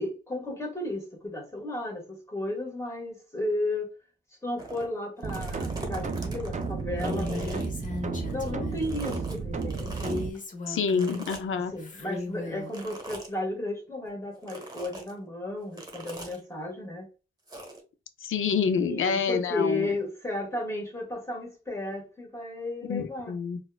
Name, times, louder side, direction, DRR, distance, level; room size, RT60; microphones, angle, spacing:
voice 1, 0.0-3.9 4.4-7.7 8.3-10.1 11.5-17.1 18.7-23.3, left 1 dB, 15° left, 1.5 m, -34 dB
sound 1, 4.6-4.9 5.2-8.5 8.8-10.2 10.9-11.7 12.7-13.3 14.4-15.1 15.7-16.4 17.5-17.8, right 1 dB, 20° right, 1.1 m, -41 dB
sound 2, 5.2-10.3, right 4 dB, 35° right, 0.4 m, -33 dB
Female speech woman speaking, 7.0-8.9 9.9-11.3 11.8-12.7, left 3 dB, 40° left, 0.8 m, -36 dB
voice 2, 10.7-11.7 18.2-19.9 22.8-23.6, left 6 dB, 85° left, 0.5 m, -27 dB
4.2 x 2.3 x 2.3 m
cardioid pair, 75°, 20 cm